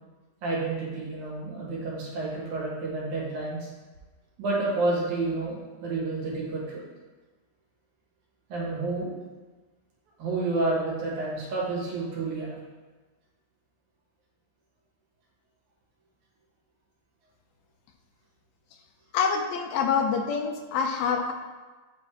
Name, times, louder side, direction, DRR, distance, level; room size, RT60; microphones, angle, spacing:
voice 1, 0.4-3.7 4.4-6.8 8.5-9.1 10.2-12.6, right 2 dB, 90° right, -5 dB, 3.0 m, -30 dB
voice 2, 19.1-21.3, left 6 dB, 80° left, 5 dB, 1.7 m, -26 dB
9.2 x 3.4 x 3.4 m, 1.3 s
omnidirectional pair, 3.3 m